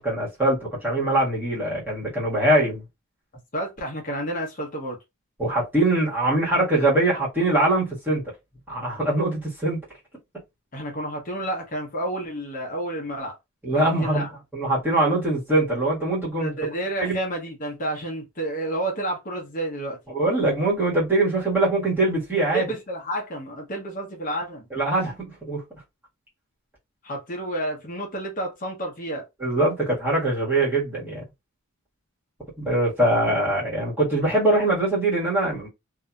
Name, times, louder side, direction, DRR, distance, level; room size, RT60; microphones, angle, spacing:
voice 1, 0.0-2.8 5.4-8.2 8.7-9.8 13.6-14.3 14.5-16.5 17.0-17.2 20.1-22.6 24.7-25.6 29.4-31.2 32.6-35.7, right 2 dB, 10° right, 1.5 m, -22 dB
voice 2, 3.5-5.0 10.7-13.3 13.7-14.3 16.4-20.0 22.5-24.7 27.0-29.2, right 1 dB, 40° left, 0.9 m, -30 dB
2.7 x 2.6 x 2.3 m
head